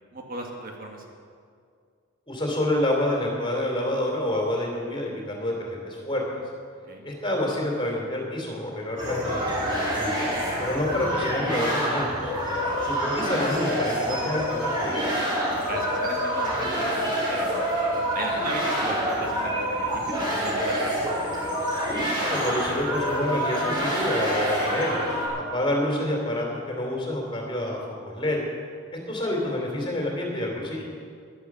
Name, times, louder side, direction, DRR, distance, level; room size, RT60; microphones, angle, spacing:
voice 1, 0.1-1.0 6.9-7.1 15.6-17.7 18.1-21.3, right 1 dB, 45° right, 1 dB, 1.5 m, -37 dB
voice 2, 2.3-6.2 7.0-10.2 10.6-12.3 12.8-15.0 22.2-25.0 25.3-27.8 28.0-28.4 29.1-30.9, left 1 dB, 25° left, 0 dB, 2.9 m, -28 dB
sound 1, 9.0-25.3, equal, 25° right, 4.1 m, -27 dB
12.0 x 11.0 x 7.2 m, 2.2 s
head